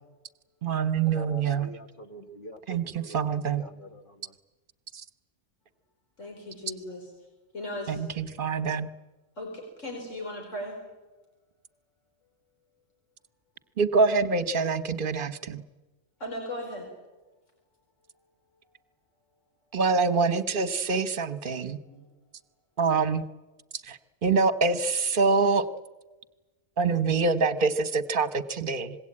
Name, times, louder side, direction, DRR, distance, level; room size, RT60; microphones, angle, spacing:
voice 1, 0.6-1.7 2.7-3.6 7.9-8.9 13.8-15.6 19.7-21.8 22.8-23.2 23.9-25.7 26.8-29.0, right 4 dB, 45° right, 13 dB, 1.2 m, -25 dB
voice 2, 1.1-4.0, equal, 45° left, 7 dB, 1.7 m, -44 dB
voice 3, 6.2-7.1 7.5-8.1 9.4-10.8 16.2-16.9 21.5-22.0, left 1 dB, 80° left, 1 dB, 5.0 m, -37 dB
25.5 x 21.0 x 8.7 m, 1.2 s
omnidirectional pair, 1.3 m